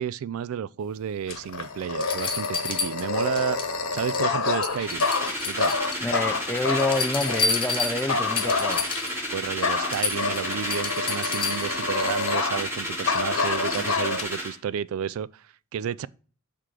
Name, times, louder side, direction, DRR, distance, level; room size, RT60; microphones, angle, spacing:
voice 1, 0.0-3.6 3.9-5.1 5.5-5.8 9.3-16.1, right 8 dB, 70° right, 0.3 m, -31 dB
Dog, 1.3-7.5 8.1-9.2 9.6-12.8 13.1-14.2, left 4 dB, 65° left, 1.0 m, -28 dB
sound 1, 1.3-1.4 2.0-3.7 4.0-4.4 4.6-6.1 6.5-9.2 9.5-9.6 9.9-11.8 13.5-13.6, left 4 dB, 25° left, 0.8 m, -30 dB
sound 2, 4.8-14.5, equal, 10° right, 2.5 m, -32 dB
voice 2, 6.0-8.8, left 2 dB, 10° left, 0.4 m, -28 dB
6.6 x 3.7 x 4.6 m
head